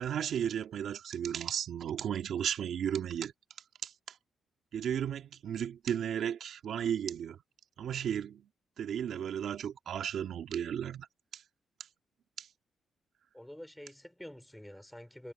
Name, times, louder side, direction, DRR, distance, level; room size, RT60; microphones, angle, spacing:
voice 1, 0.0-3.3 3.8-4.2 4.7-7.4 7.8-8.5 8.8-11.1 11.3-11.4 12.4-12.5, right 9 dB, 75° right, 2.1 m, -34 dB
voice 2, 13.3-15.3, left 1 dB, 5° left, 4.1 m, -48 dB
cardioid pair, 90°, 0 cm